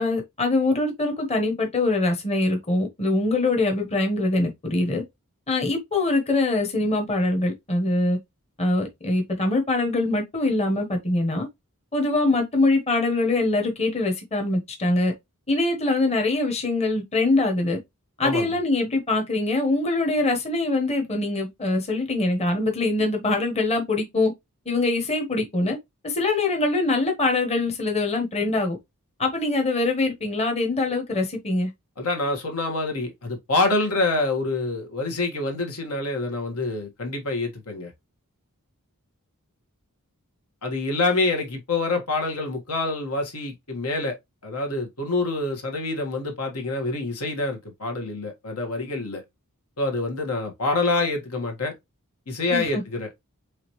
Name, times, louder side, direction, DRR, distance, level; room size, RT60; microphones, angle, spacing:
voice 1, 0.0-5.0 5.5-8.2 8.6-11.5 11.9-15.1 15.5-17.8 18.2-24.3 24.7-25.8 26.0-28.8 29.2-31.7 52.5-52.8, left 2 dB, 30° left, 1.0 m, -23 dB
voice 2, 18.2-18.6 32.0-37.9 40.6-44.2 44.4-49.2 49.8-51.7 52.3-53.1, left 2 dB, 85° left, 1.6 m, -26 dB
5.0 x 3.3 x 3.0 m
head